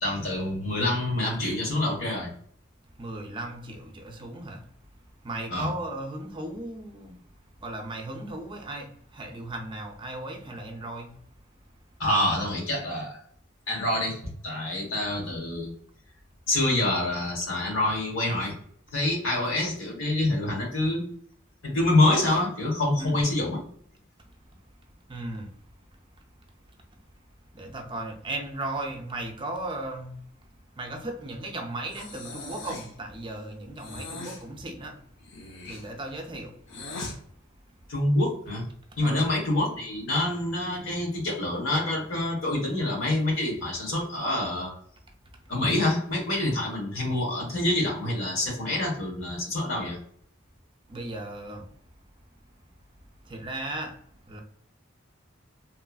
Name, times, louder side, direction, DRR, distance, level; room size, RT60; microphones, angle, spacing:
voice 1, 0.0-2.3 5.5-5.7 12.0-13.2 13.7-15.7 16.5-18.5 18.9-21.0 21.6-23.6 37.9-38.6 39.0-44.7 45.5-50.0, left 1 dB, 80° left, -1 dB, 1.2 m, -26 dB
voice 2, 2.9-4.7 5.2-7.1 7.6-11.2 23.0-23.2 25.1-25.5 26.9-27.0 27.5-30.5 30.8-35.0 35.6-36.6 39.0-39.3 50.9-51.7 53.2-54.0 54.2-54.4, right 2 dB, 25° right, 3 dB, 0.4 m, -36 dB
Breathing, 31.9-33.0 33.8-34.4 35.2-37.2, left 2 dB, 65° left, 0.6 m, -40 dB
3.0 x 2.4 x 2.3 m, 0.63 s
head